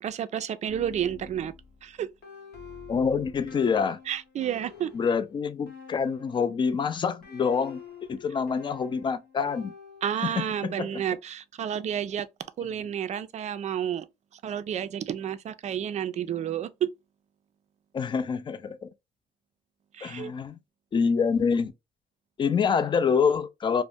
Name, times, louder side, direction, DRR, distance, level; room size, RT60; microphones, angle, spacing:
voice 1, 0.0-1.5 1.8-2.1 4.1-4.9 10.0-12.3 12.6-14.1 14.4-16.9 19.9-20.3, right 9 dB, 45° right, 0.4 m, -30 dB
sound 1, 0.7-6.6 7.2-10.4, left 5 dB, 75° left, 1.0 m, -48 dB
voice 2, 2.9-4.0 4.9-7.8 8.1-9.7 10.2-11.0 17.9-18.9 20.0-20.6 20.9-21.7 22.4-23.8, left 6 dB, 30° left, 0.4 m, -26 dB
2.5 x 2.0 x 3.3 m
cardioid pair, 100°, 17 cm